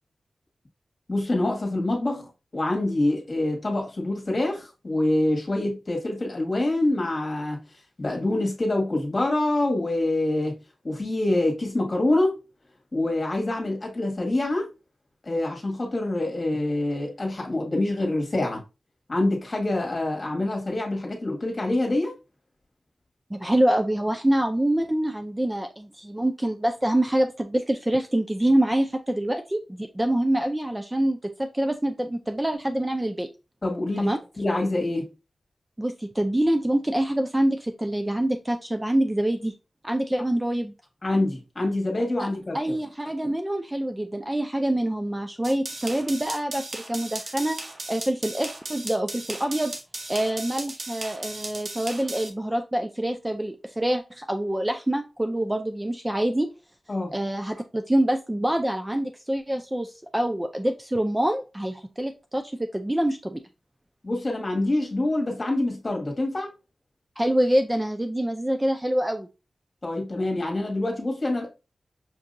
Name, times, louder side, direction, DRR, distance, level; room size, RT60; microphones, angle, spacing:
voice 1, 1.1-7.6 8.0-10.6 10.8-12.4 12.9-14.7 15.2-18.6 19.1-22.1 33.6-35.1 41.0-42.7 56.9-57.1 64.0-66.5 69.8-71.5, left 2 dB, 35° left, 1.5 m, -26 dB
voice 2, 23.3-33.3 34.0-34.2 35.8-39.5 39.8-40.7 42.2-42.3 42.5-47.6 47.9-49.7 50.1-56.5 57.1-63.4 67.2-69.3, right 1 dB, 15° right, 0.4 m, -25 dB
sound 1, 45.4-52.3, right 2 dB, 50° right, 0.8 m, -36 dB
5.9 x 2.7 x 2.5 m
wide cardioid pair, 85°, 0 cm